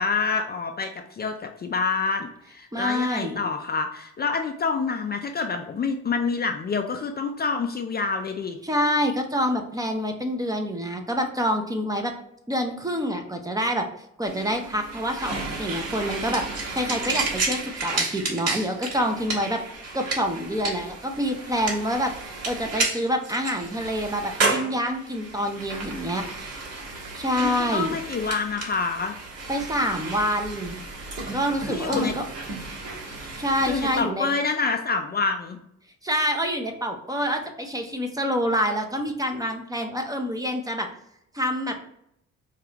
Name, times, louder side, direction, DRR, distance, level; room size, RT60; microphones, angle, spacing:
voice 1, 0.0-8.6 27.4-29.2 31.6-32.1 33.7-35.6, left 4 dB, 35° left, 5 dB, 0.4 m, -27 dB
voice 2, 2.7-3.4 8.6-12.1 12.5-13.9 14.2-16.5 16.7-19.6 19.9-26.2 27.1-28.0 29.5-30.8 31.3-32.3 33.4-34.3 36.0-40.9 41.3-41.8, equal, 10° right, 4 dB, 0.7 m, -27 dB
sound 1, 14.2-34.0, right 3 dB, 55° right, 1.4 m, -32 dB
4.7 x 2.4 x 2.9 m, 0.75 s
cardioid pair, 90°, 30 cm